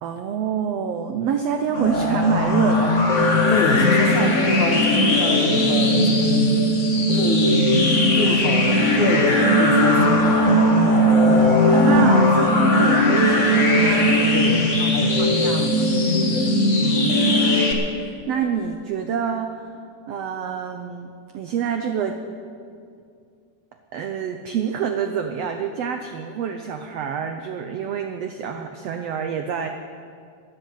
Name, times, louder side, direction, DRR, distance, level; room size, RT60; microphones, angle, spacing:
voice 1, 0.0-3.3 4.0-4.1 10.8-14.4 14.8-14.9 15.2-15.9 16.8-17.7 18.0-19.6 20.1-22.2 23.9-29.7, right 7 dB, 85° right, 6 dB, 1.4 m, -27 dB
sound 1, 1.7-17.7, left 1 dB, 45° left, 0.9 m, -18 dB
voice 2, 3.5-6.7 7.1-7.9 8.1-10.2 14.3-15.7 16.3-16.6, left 3 dB, 65° left, 3 dB, 2.7 m, -26 dB
12.5 x 10.5 x 8.9 m, 2.3 s
omnidirectional pair, 3.8 m